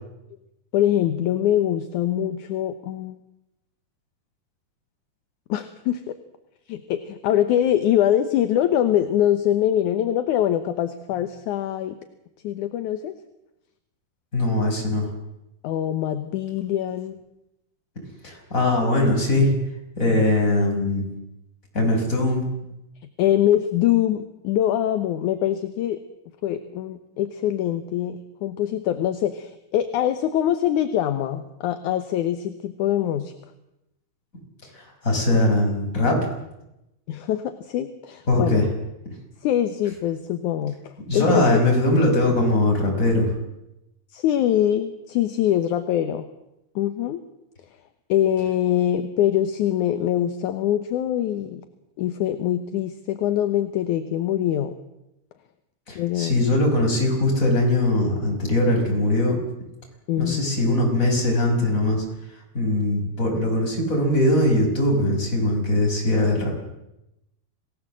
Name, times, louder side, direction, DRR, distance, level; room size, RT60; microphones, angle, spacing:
voice 1, 0.7-3.2 5.5-6.1 6.7-11.9 12.4-13.1 15.6-17.2 20.1-20.3 23.2-26.0 26.4-33.3 37.1-38.7 39.4-41.6 44.1-46.3 46.8-47.2 48.1-51.6 52.0-54.7 56.0-56.3 60.1-60.6, left 11 dB, 70° left, 10 dB, 2.1 m, -23 dB
voice 2, 14.3-15.1 18.2-19.5 20.0-21.1 21.7-22.5 34.7-36.3 38.3-38.7 41.1-43.3 55.9-59.4 60.2-62.0 62.5-66.5, left 1 dB, 20° left, 1 dB, 5.9 m, -21 dB
27.0 x 17.5 x 7.6 m, 0.90 s
omnidirectional pair, 4.4 m